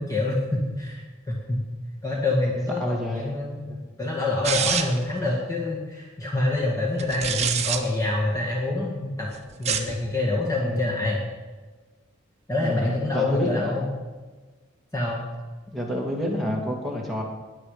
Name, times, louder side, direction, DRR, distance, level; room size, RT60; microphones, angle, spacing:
voice 1, 0.0-1.6 2.0-9.3 9.6-11.2 12.5-13.9 14.9-15.2, left 2 dB, 15° left, -3 dB, 2.0 m, -26 dB
voice 2, 2.8-3.4 10.6-11.1 12.6-13.9 15.7-17.2, left 1 dB, ahead, -2 dB, 2.5 m, -29 dB
sound 1, 4.4-5.1 7.0-7.8 9.5-10.0, right 7 dB, 35° right, 1.2 m, -26 dB
21.0 x 7.7 x 5.1 m, 1.3 s
head